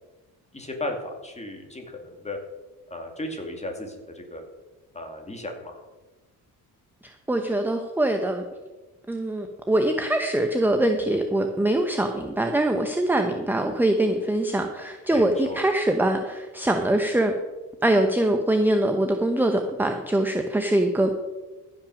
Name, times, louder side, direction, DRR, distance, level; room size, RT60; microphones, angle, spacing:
voice 1, 0.5-2.4 2.9-4.4 4.9-5.8 15.1-15.6, left 1 dB, 15° left, 3 dB, 2.3 m, -35 dB
voice 2, 7.0-8.4 9.1-17.3 17.8-21.1, right 1 dB, 5° right, 5 dB, 0.9 m, -23 dB
15.0 x 6.0 x 6.4 m, 1.2 s
cardioid pair, 120°, 39 cm